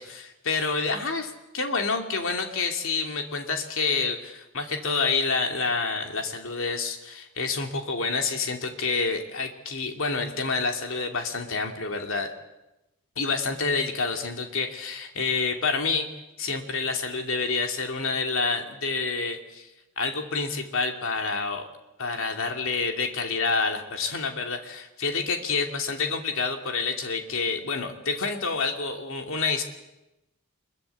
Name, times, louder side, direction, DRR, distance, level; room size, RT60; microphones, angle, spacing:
voice 1, 0.0-12.3 13.2-16.1 16.4-19.7 20.0-21.7 22.0-29.6, left 4 dB, 65° left, 4 dB, 2.8 m, -28 dB
24.5 x 22.0 x 8.5 m, 0.96 s
head